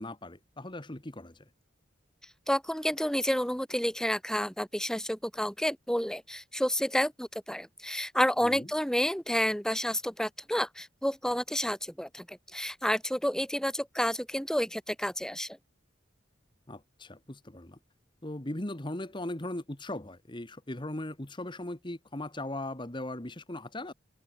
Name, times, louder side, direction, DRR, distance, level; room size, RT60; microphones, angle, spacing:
voice 1, 0.0-1.4 8.4-8.7 16.7-17.8 18.2-23.9, left 1 dB, 25° left, 1.5 m, -38 dB
voice 2, 2.5-15.6, equal, 5° left, 2.1 m, -30 dB
head